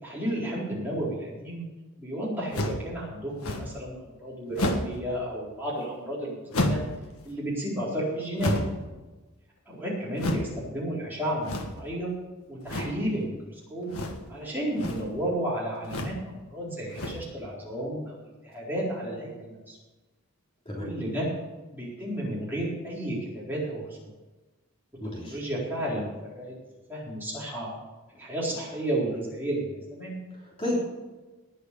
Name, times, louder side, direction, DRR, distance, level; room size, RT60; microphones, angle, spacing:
voice 1, 0.0-1.7 2.0-6.8 7.2-8.5 9.7-12.1 12.5-13.9 14.3-19.8 20.8-21.3 21.7-24.1 25.2-26.1 26.4-26.5 26.9-27.7 28.2-30.1, right 1 dB, 10° right, -7 dB, 4.2 m, -32 dB
sound 1, 2.5-2.9 3.4-3.8 4.5-5.0 6.5-7.0 8.4-8.9 10.2-10.5 11.4-11.9 12.7-13.0 13.9-14.3 14.7-15.1 15.8-16.2 16.9-17.3, left 1 dB, 75° left, 1.6 m, -30 dB
voice 2, 25.0-25.4 30.3-30.8, left 1 dB, 25° left, -5 dB, 3.2 m, -31 dB
19.0 x 6.4 x 6.9 m, 1.2 s
head